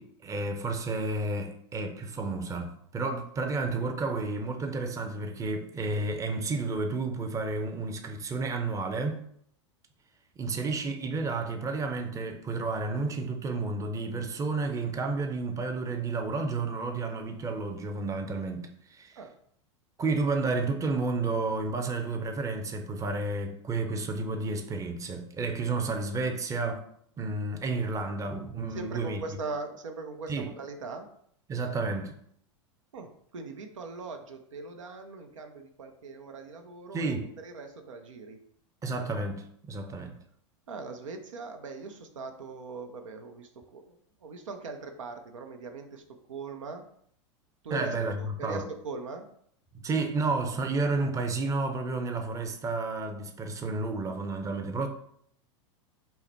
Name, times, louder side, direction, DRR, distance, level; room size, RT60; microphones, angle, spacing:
voice 1, 0.0-9.2 10.4-19.2 20.0-26.9 27.2-29.2 30.3-30.5 31.5-32.1 36.9-37.3 38.8-40.1 47.7-48.7 49.8-54.9, right 3 dB, 20° right, 0.6 m, -31 dB
voice 2, 28.7-31.1 32.9-38.4 40.7-46.8 47.6-49.3, right 3 dB, 85° right, 0.7 m, -41 dB
5.5 x 2.1 x 4.4 m
hypercardioid pair, 105°, 16 cm